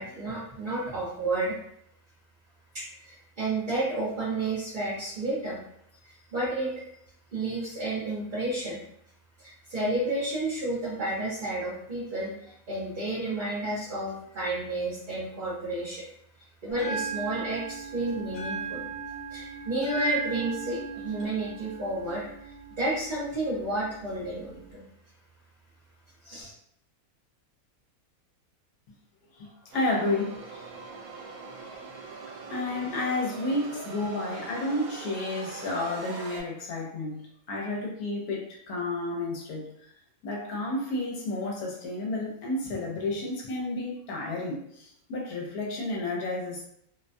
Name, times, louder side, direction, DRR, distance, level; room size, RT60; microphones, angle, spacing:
voice 1, 0.0-1.5 2.7-5.6 6.0-6.8 7.3-8.8 9.4-16.0 16.6-18.8 19.3-22.2 22.8-24.9 26.2-26.5, right 2 dB, 45° right, -9 dB, 0.7 m, -31 dB
Bell, 16.7-24.7, right 5 dB, 55° left, 0.7 m, -38 dB
voice 2, 29.3-30.6 32.5-39.9 40.2-46.7, left 2 dB, 80° left, -1 dB, 1.1 m, -31 dB
sound 1, 29.7-36.4, right 4 dB, 75° right, 1.0 m, -42 dB
2.7 x 2.1 x 2.5 m, 0.70 s
omnidirectional pair, 1.6 m